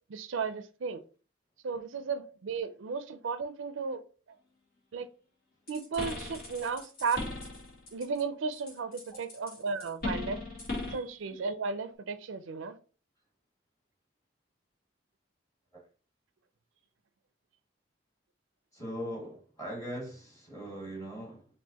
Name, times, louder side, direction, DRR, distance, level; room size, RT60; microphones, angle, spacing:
voice 1, 0.1-1.0 1.6-4.0 4.9-5.1 5.7-7.2 7.9-10.4 10.9-12.8, right 5 dB, 90° right, 0.5 m, -34 dB
sound 1, 5.7-8.2 8.5-11.1, left 2 dB, 50° left, 1.7 m, -38 dB
voice 2, 18.7-21.5, equal, 20° left, 1.6 m, -40 dB
5.5 x 2.6 x 2.9 m
head